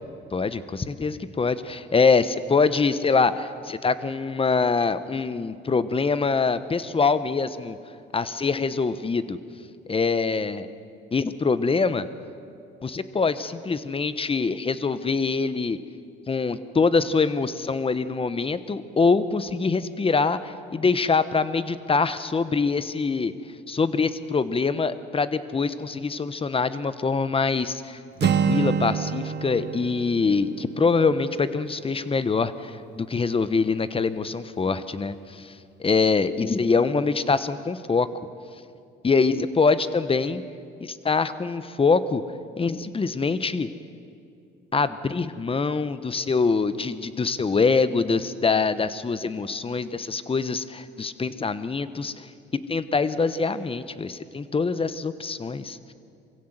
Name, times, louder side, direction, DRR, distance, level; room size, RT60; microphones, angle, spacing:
voice 1, 0.3-7.8 8.1-9.4 9.9-10.7 11.1-12.1 12.8-15.8 16.3-23.3 23.7-35.5 35.8-38.1 39.0-40.4 40.8-42.2 42.6-43.7 44.7-52.3 52.5-55.9, left 4 dB, 30° left, 14 dB, 1.0 m, -24 dB
Acoustic guitar, 28.2-32.1, right 6 dB, 60° right, 1.1 m, -27 dB
23.5 x 16.0 x 8.0 m, 2.5 s
cardioid pair, 90°, 20 cm